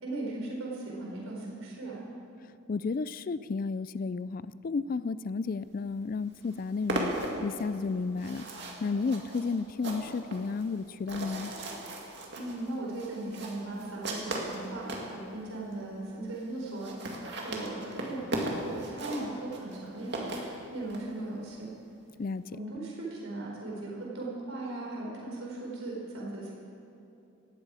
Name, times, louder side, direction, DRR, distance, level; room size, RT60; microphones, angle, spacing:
voice 1, 0.0-2.1 12.3-17.1 17.4-21.7 22.5-26.5, right 2 dB, 85° right, -3 dB, 4.3 m, -38 dB
voice 2, 2.7-7.1 7.4-8.4 8.8-11.5 22.2-22.4, left 4 dB, 45° left, 16 dB, 0.4 m, -32 dB
sound 1, 5.9-6.0 6.3-15.1 15.7-15.8 16.0-16.1 16.3-16.4 16.6-21.0, right 1 dB, 55° right, 2.3 m, -37 dB
18.5 x 15.5 x 4.9 m, 2.8 s
head